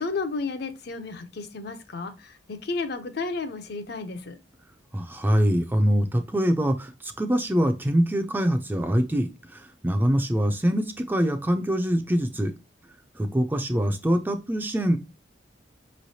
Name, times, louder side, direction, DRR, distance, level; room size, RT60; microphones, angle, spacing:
voice 1, 0.0-4.4, left 3 dB, 60° left, 8 dB, 0.6 m, -32 dB
voice 2, 4.9-12.5 13.2-15.0, equal, 10° right, 6 dB, 0.4 m, -24 dB
4.8 x 3.1 x 2.7 m, 0.27 s
head